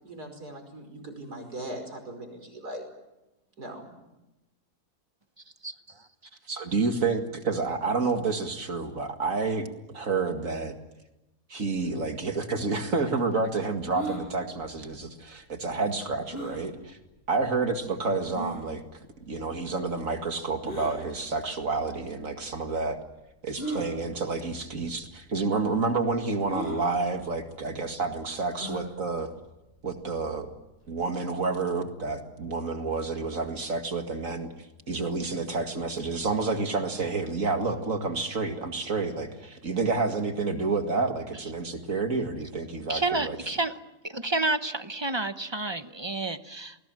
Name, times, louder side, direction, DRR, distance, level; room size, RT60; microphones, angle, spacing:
voice 1, 0.0-2.8 3.6-3.9, right 1 dB, 75° right, 5 dB, 5.8 m, -40 dB
voice 2, 5.6-6.1 41.3-41.5 42.9-43.8 44.0-46.8, right 2 dB, 20° right, 10 dB, 0.7 m, -30 dB
voice 3, 6.5-9.7 9.9-10.8 11.5-17.0 17.3-18.8 19.2-23.0 23.4-29.3 29.8-30.5 30.9-34.5 34.9-43.4, right 4 dB, 55° right, 5 dB, 2.4 m, -29 dB
sound 1, 13.9-14.2 16.3-16.6 17.4-17.5 18.3-18.6 20.6-20.9 22.0-22.1 23.5-23.9 24.8-24.9 25.2-25.3 26.5-26.8 28.5-28.9, right 1 dB, 35° left, 7.8 m, -35 dB
29.5 x 20.5 x 7.7 m, 0.97 s
omnidirectional pair, 1.7 m